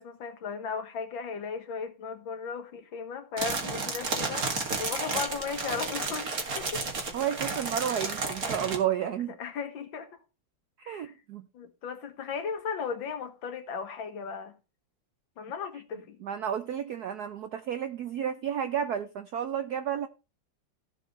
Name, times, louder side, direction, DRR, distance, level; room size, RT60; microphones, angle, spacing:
voice 1, 0.0-4.5 4.8-6.3 6.6-6.8 9.4-10.1 10.8-11.1 11.5-14.5 15.4-16.2, left 6 dB, 70° left, 2.2 m, -36 dB
sound 1, 3.4-8.8, right 3 dB, 45° right, 2.3 m, -32 dB
voice 2, 7.1-9.3 10.9-11.5 16.2-20.1, right 9 dB, 65° right, 1.0 m, -31 dB
15.0 x 5.1 x 5.3 m
omnidirectional pair, 2.3 m